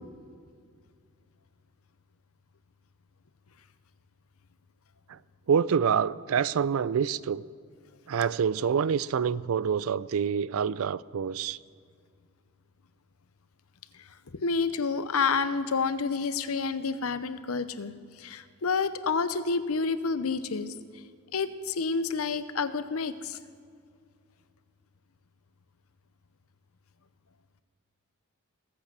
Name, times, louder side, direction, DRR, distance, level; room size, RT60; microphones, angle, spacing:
voice 1, 5.5-7.4 8.1-11.6, right 7 dB, 70° right, 20 dB, 0.4 m, -26 dB
voice 2, 14.4-17.9 18.2-20.7 21.3-23.4, left 4 dB, 75° left, 13 dB, 0.8 m, -29 dB
20.5 x 8.4 x 6.1 m, 2.2 s
head